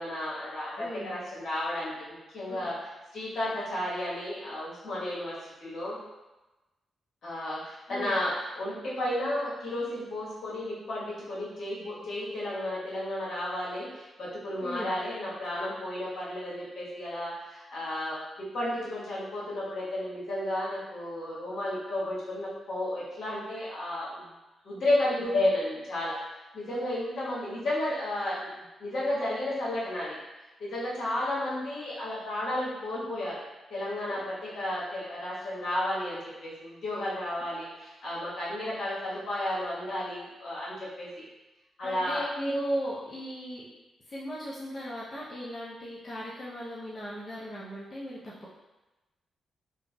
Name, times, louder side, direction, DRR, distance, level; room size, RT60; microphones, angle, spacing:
voice 1, 0.0-2.8 3.1-6.0 7.2-24.3 24.6-26.2 26.5-28.5 28.8-30.2 30.6-33.4 33.7-41.1 41.8-42.2, left 1 dB, 70° left, -8 dB, 1.3 m, -32 dB
voice 2, 0.8-1.1 2.5-2.7 7.9-8.2 14.6-14.9 26.7-26.8 41.8-43.6 44.1-48.5, equal, 35° left, -8 dB, 0.7 m, -36 dB
3.2 x 2.5 x 2.3 m, 1.1 s
supercardioid pair, 60°, 0 cm